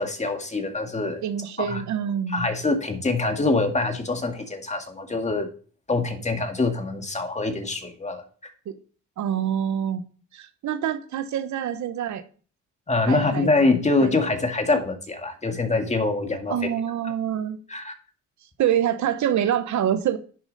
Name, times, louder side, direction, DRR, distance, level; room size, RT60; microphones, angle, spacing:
voice 1, 0.0-1.2 1.6-1.8 2.3-5.5 5.9-8.5 12.9-16.6 17.7-17.9, left 3 dB, 25° left, 5 dB, 1.9 m, -24 dB
voice 2, 1.2-2.5 8.7-8.8 9.2-10.0 10.3-12.2 13.1-13.5 14.0-14.1 16.5-17.6 18.6-20.2, right 9 dB, 70° right, 10 dB, 1.1 m, -26 dB
10.5 x 6.9 x 4.1 m, 0.41 s
cardioid pair, 90°, 30 cm